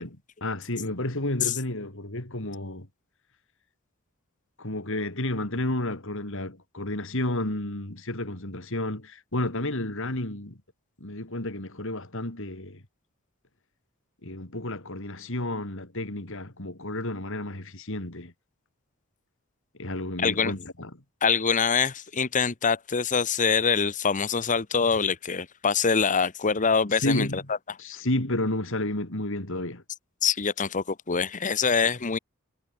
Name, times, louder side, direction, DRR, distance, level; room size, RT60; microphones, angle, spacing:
voice 1, 0.0-2.9 4.6-10.6 11.0-12.8 14.2-18.3 19.8-20.9 27.0-27.4 27.8-29.8, left 1 dB, 60° left, 3.8 m, -31 dB
voice 2, 20.2-20.5 21.2-27.4 30.2-32.2, left 5 dB, 35° left, 1.0 m, -24 dB
head